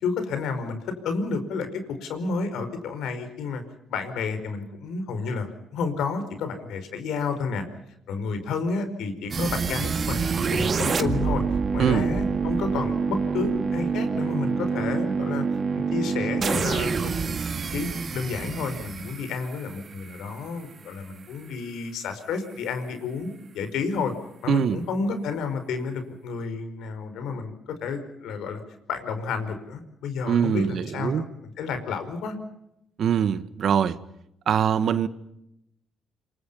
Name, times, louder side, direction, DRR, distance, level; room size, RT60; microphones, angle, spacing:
voice 1, 0.0-3.6 3.9-7.6 8.1-11.4 11.7-15.4 15.9-17.4 17.7-24.1 24.4-27.5 27.8-28.6 28.9-31.3 31.6-32.3, left 4 dB, 80° left, 5.1 m, -30 dB
sound 1, 9.3-20.3, right 5 dB, 45° right, 2.0 m, -27 dB
voice 2, 24.5-24.8 30.3-31.2 33.0-34.0 34.5-35.1, right 8 dB, 65° right, 1.6 m, -23 dB
27.5 x 24.5 x 5.6 m
cardioid pair, 90°, 0 cm